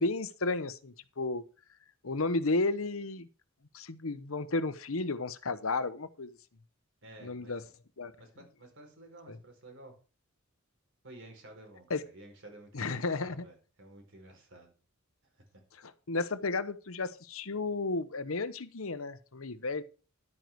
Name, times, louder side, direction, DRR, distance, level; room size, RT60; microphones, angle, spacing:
voice 1, 0.0-1.4 2.0-3.3 3.7-6.4 7.2-7.6 8.0-8.1 9.3-9.4 11.9-12.0 12.7-13.4 16.1-19.8, left 3 dB, 70° left, 14 dB, 1.0 m, -33 dB
voice 2, 7.0-7.6 8.2-10.0 11.0-14.7 15.5-15.6, right 1 dB, 60° right, 3 dB, 4.6 m, -52 dB
11.0 x 9.3 x 4.7 m, 0.34 s
head